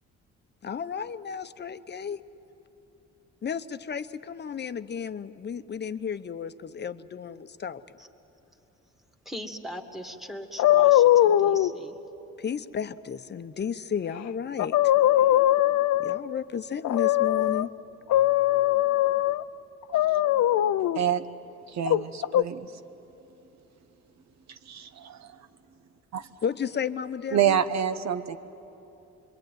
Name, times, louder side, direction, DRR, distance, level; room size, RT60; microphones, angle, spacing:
voice 1, 0.6-2.2 3.4-7.8 12.4-14.9 16.0-17.7 26.4-27.6, left 7 dB, 35° left, 11 dB, 0.9 m, -33 dB
voice 2, 9.3-12.0, equal, ahead, 3 dB, 2.0 m, -40 dB
sound 1, 10.6-11.7 14.2-14.3 14.6-16.3 16.8-17.7 18.1-19.4 19.9-21.0 21.9-22.4, left 13 dB, 65° left, 0.6 m, -21 dB
voice 3, 20.9-21.3 21.7-22.7 24.5-25.3 26.1-26.3 27.3-28.4, right 9 dB, 65° right, 10 dB, 1.2 m, -27 dB
26.5 x 23.0 x 9.3 m, 2.9 s
cardioid pair, 90°, 30 cm